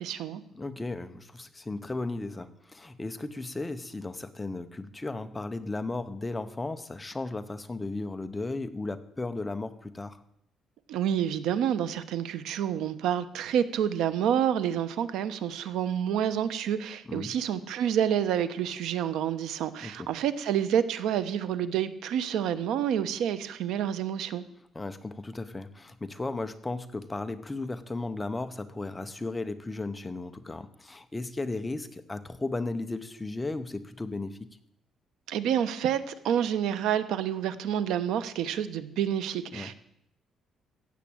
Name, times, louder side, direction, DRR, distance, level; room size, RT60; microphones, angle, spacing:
voice 1, 0.0-0.4 10.9-24.4 35.3-39.7, right 9 dB, 85° right, 13 dB, 0.9 m, -28 dB
voice 2, 0.5-10.2 17.1-17.3 19.8-20.1 24.7-34.5 39.5-39.7, left 2 dB, 10° left, 10 dB, 0.7 m, -35 dB
15.5 x 7.4 x 8.8 m, 0.75 s
cardioid pair, 160°, 0 cm